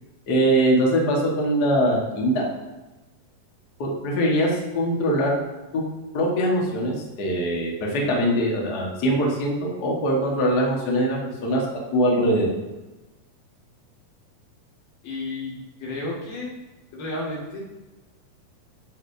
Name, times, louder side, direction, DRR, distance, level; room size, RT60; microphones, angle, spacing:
voice 1, 0.3-2.5 3.8-5.3 5.7-5.8 6.1-11.6 11.9-12.5, equal, 50° left, -2 dB, 1.2 m, -22 dB
voice 2, 15.0-15.5 15.8-16.5 16.9-17.6, left 2 dB, 90° left, -4 dB, 4.1 m, -31 dB
13.0 x 5.0 x 2.7 m, 1.1 s
omnidirectional pair, 4.1 m